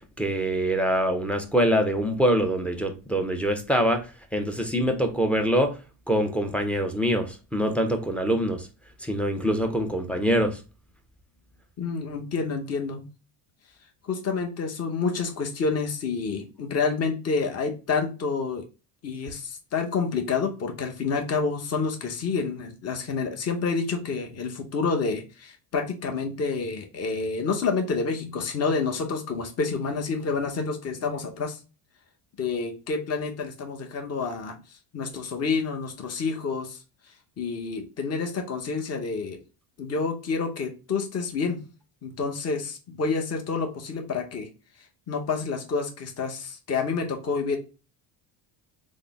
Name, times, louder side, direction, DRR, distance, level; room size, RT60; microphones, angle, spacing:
voice 1, 0.2-4.0 4.3-5.7 6.1-8.6 9.0-10.6, equal, 5° left, 0.4 m, -24 dB
voice 2, 11.8-13.1 14.0-18.6 19.0-31.6 32.4-34.6 34.9-36.8 37.4-39.4 39.8-41.6 42.0-44.5 45.1-47.6, left 4 dB, 30° left, 0.8 m, -28 dB
3.7 x 2.1 x 3.3 m
supercardioid pair, 100°, 49 cm